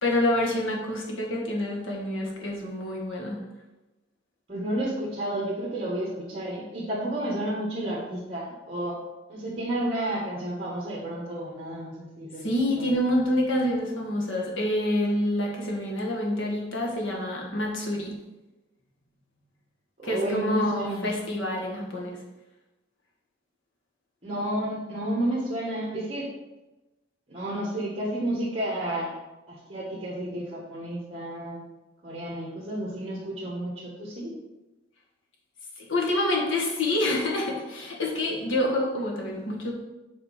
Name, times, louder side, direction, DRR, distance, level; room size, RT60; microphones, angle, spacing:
voice 1, 0.0-3.4 12.4-18.1 20.0-22.2 35.8-39.7, left 1 dB, 75° left, -1 dB, 1.6 m, -27 dB
voice 2, 4.5-9.0 9.3-12.5 12.8-12.9 20.0-21.1 24.2-26.3 27.3-29.1 29.5-31.6 32.0-34.3, right 1 dB, 30° right, -5 dB, 1.3 m, -31 dB
7.3 x 4.1 x 5.1 m, 1.1 s
head